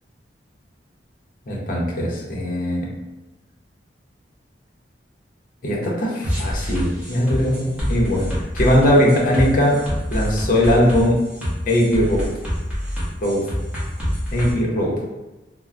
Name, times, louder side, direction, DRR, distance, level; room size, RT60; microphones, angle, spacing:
voice 1, 1.5-2.9 5.6-9.8 10.1-11.2 11.7-12.3 13.2-13.4 14.3-14.9, equal, 50° left, -3 dB, 0.6 m, -19 dB
sound 1, 6.2-14.5, equal, 10° right, 0.9 m, -26 dB
3.2 x 2.1 x 2.4 m, 1.1 s
head